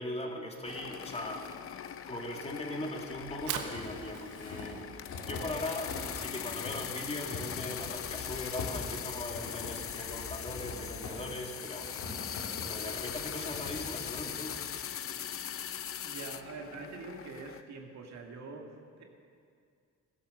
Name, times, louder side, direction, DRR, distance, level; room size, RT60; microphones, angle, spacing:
voice 1, 0.0-4.8 5.2-11.9 12.7-14.6, left 1 dB, 20° left, 1 dB, 2.3 m, -40 dB
sound 1, 0.6-17.6, left 9 dB, 45° left, 0.7 m, -41 dB
sound 2, 3.1-6.1 6.4-14.6, left 3 dB, 80° left, 3.5 m, -44 dB
Fire, 3.2-9.4, right 9 dB, 85° right, 1.2 m, -45 dB
voice 2, 16.0-19.0, right 3 dB, 65° right, 2 dB, 2.1 m, -45 dB
15.0 x 11.5 x 6.8 m, 2.3 s
cardioid pair, 90°, 30 cm